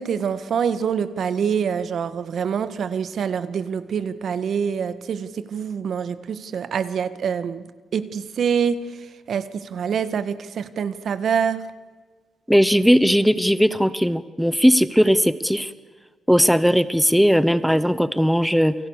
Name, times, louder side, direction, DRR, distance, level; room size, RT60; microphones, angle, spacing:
voice 1, 0.0-7.7 7.9-8.8 9.3-11.7, right 7 dB, 65° right, 14 dB, 1.7 m, -25 dB
voice 2, 12.5-15.7 16.3-18.8, equal, ahead, 15 dB, 1.0 m, -18 dB
29.5 x 25.5 x 6.7 m, 1.4 s
cardioid pair, 120°, 0 cm